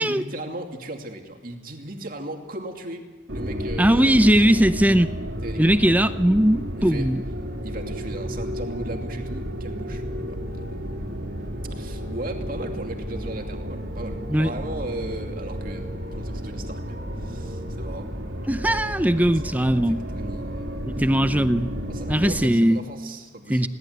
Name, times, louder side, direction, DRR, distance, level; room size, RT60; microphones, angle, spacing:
voice 1, 0.0-4.6 5.4-5.7 6.8-7.1 7.6-10.8 11.7-18.1 19.0-19.3 19.7-20.9 21.9-23.7, right 1 dB, 45° right, 3 dB, 2.6 m, -37 dB
sound 1, 3.3-22.5, equal, 65° right, 3.2 m, -32 dB
voice 2, 3.8-5.1 5.6-7.2 14.3-14.5 18.5-20.0 21.0-21.7 22.1-22.8 23.5-23.7, right 1 dB, 10° right, 12 dB, 0.6 m, -19 dB
21.5 x 18.0 x 8.1 m, 1.3 s
head